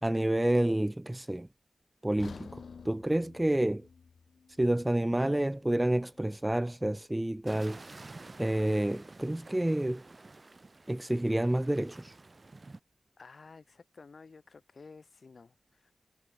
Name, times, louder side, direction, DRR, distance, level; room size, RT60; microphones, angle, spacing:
voice 1, 0.0-1.5 2.0-3.9 4.6-7.8 8.4-10.0 10.9-12.1, right 1 dB, 10° right, 0.6 m, -29 dB
sound 1, 2.2-6.3 6.6-6.8 7.4-7.5, left 5 dB, 65° left, 2.4 m, -51 dB
sound 2, 7.5-12.8, right 3 dB, 30° right, 2.4 m, -50 dB
voice 2, 13.2-15.9, left 4 dB, 45° left, 5.6 m, -53 dB
wide cardioid pair, 140°, 0 cm